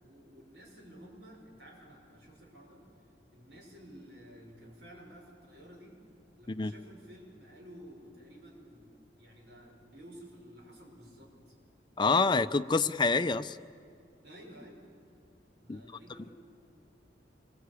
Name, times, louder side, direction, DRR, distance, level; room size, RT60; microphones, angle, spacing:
voice 1, 0.0-2.9 3.3-6.0 6.4-11.5 14.2-14.8 15.6-16.3, equal, 70° right, 0 dB, 6.4 m, -52 dB
voice 2, 12.0-13.6 15.7-15.8, left 4 dB, 25° left, 10 dB, 0.6 m, -27 dB
26.0 x 22.5 x 8.4 m, 2.4 s
head